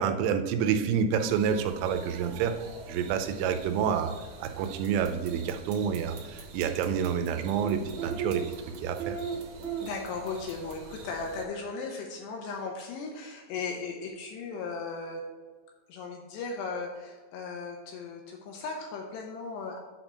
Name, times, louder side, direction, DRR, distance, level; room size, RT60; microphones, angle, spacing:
voice 1, 0.0-2.6 2.9-4.1 4.4-8.4 8.8-9.2, right 7 dB, 90° right, 8 dB, 3.1 m, -28 dB
sound 1, 1.2-11.4, right 5 dB, 70° right, 2.9 m, -41 dB
sound 2, 4.4-10.8, right 5 dB, 45° right, 2.3 m, -55 dB
voice 2, 9.8-15.2 15.9-19.8, left 4 dB, 75° left, 2 dB, 2.6 m, -37 dB
8.3 x 4.4 x 5.5 m, 1.5 s
omnidirectional pair, 5.5 m